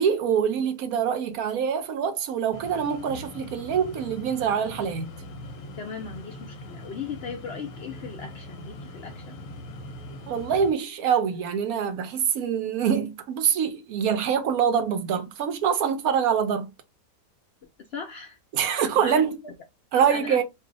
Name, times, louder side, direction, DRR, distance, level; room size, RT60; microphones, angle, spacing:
voice 1, 0.0-5.2 10.3-16.7 18.5-19.4 19.9-20.4, right 7 dB, 70° right, 1.0 m, -25 dB
sound 1, 2.5-10.7, left 1 dB, 65° left, 0.9 m, -41 dB
voice 2, 5.8-9.4 17.9-18.4 19.0-19.5 19.9-20.4, left 6 dB, 85° left, 0.5 m, -38 dB
2.6 x 2.3 x 3.7 m
omnidirectional pair, 1.7 m